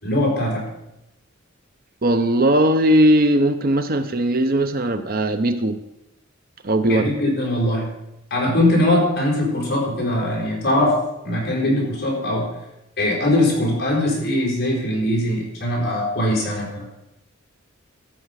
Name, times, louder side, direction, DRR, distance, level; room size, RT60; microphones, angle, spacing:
voice 1, 0.0-0.7 6.8-7.9 8.3-12.5 13.0-16.9, left 1 dB, 45° left, -2 dB, 5.0 m, -21 dB
voice 2, 2.0-5.8 6.6-7.1, right 1 dB, 45° right, 9 dB, 0.7 m, -18 dB
13.5 x 6.0 x 8.1 m, 0.87 s
head